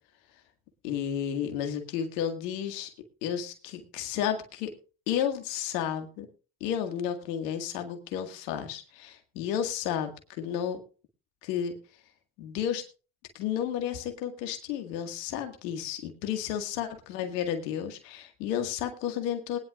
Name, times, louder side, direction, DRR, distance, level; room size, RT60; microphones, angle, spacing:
voice 1, 0.8-2.9 3.2-4.7 5.1-6.3 6.6-10.8 11.4-11.7 12.4-12.8 13.3-19.6, left 9 dB, 90° left, 6 dB, 2.0 m, -32 dB
20.0 x 10.5 x 2.5 m, 0.34 s
hypercardioid pair, 50°, 48 cm